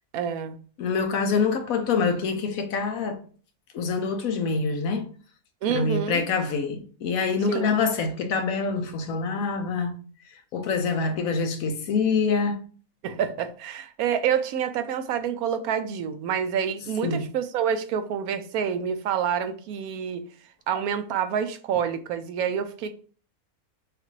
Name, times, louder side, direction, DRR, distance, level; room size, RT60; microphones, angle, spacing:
voice 1, 0.1-0.6 5.6-6.3 7.5-7.7 13.0-20.2 20.7-22.9, right 8 dB, 85° right, 1.1 m, -27 dB
voice 2, 0.8-3.2 3.7-5.1 5.7-9.9 10.5-12.6 17.0-17.3, left 4 dB, 75° left, 1.1 m, -25 dB
6.4 x 2.4 x 3.1 m
omnidirectional pair, 1.5 m